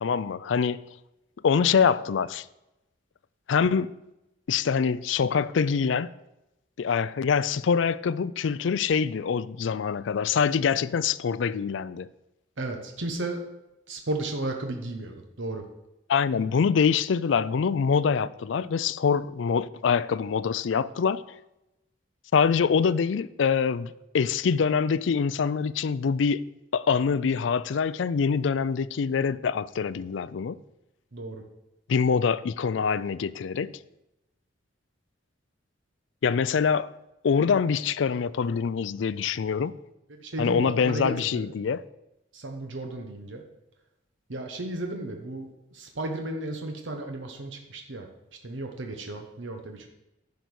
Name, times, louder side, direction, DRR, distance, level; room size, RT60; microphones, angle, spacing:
voice 1, 0.0-0.8 1.4-2.5 3.5-3.9 4.5-6.1 6.8-12.1 16.1-21.4 22.3-26.4 26.7-30.6 31.9-33.7 36.2-36.9 37.2-39.7 40.4-41.8, left 6 dB, 75° left, 0.4 m, -25 dB
voice 2, 12.6-13.4 13.9-15.6 31.1-31.4 40.2-41.5 42.3-43.4 44.3-48.1 48.4-49.9, right 2 dB, 80° right, 1.1 m, -34 dB
10.5 x 5.3 x 6.3 m
head